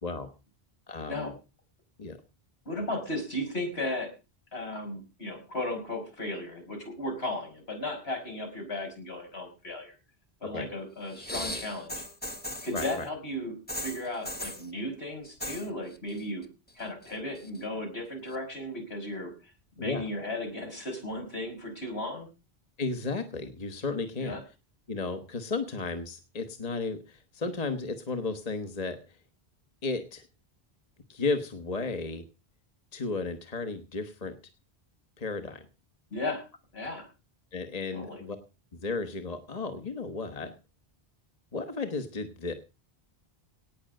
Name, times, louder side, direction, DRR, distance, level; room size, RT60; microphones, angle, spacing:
voice 1, 0.9-1.3 2.0-2.2 10.5-10.7 12.7-13.1 19.8-20.0 22.8-24.4 24.9-29.2 29.8-30.3 31.1-32.2 32.9-34.3 35.2-35.6 37.5-38.4 38.7-40.5 41.5-42.5, left 3 dB, 40° left, 7 dB, 1.3 m, -34 dB
voice 2, 2.7-4.1 4.5-9.9 10.4-12.0 12.6-13.5 13.8-16.4 16.8-19.3 19.8-22.3 24.2-24.4 36.1-36.4 36.7-37.1 37.9-38.2, left 1 dB, 75° left, 3 dB, 5.7 m, -35 dB
sound 1, 11.1-13.1 13.7-14.7 15.2-15.7 15.9-16.4 16.8-17.6 18.3-18.4, left 1 dB, 10° left, 1.2 m, -38 dB
18.0 x 6.3 x 7.7 m, 0.32 s
omnidirectional pair, 1.1 m